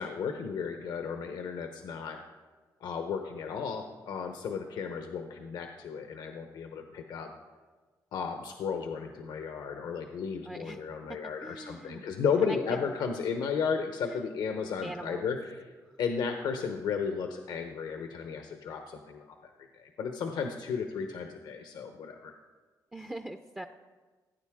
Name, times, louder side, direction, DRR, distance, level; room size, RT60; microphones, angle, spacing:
voice 1, 0.0-2.2 2.8-7.3 8.1-15.7 16.0-22.3, left 6 dB, 80° left, 5 dB, 0.9 m, -34 dB
voice 2, 10.4-10.8 11.1-12.0 12.4-12.8 14.0-14.4 14.8-15.3 22.9-23.6, right 1 dB, 10° right, 6 dB, 0.5 m, -42 dB
16.5 x 9.3 x 3.6 m, 1.3 s
cardioid pair, 95°, 7 cm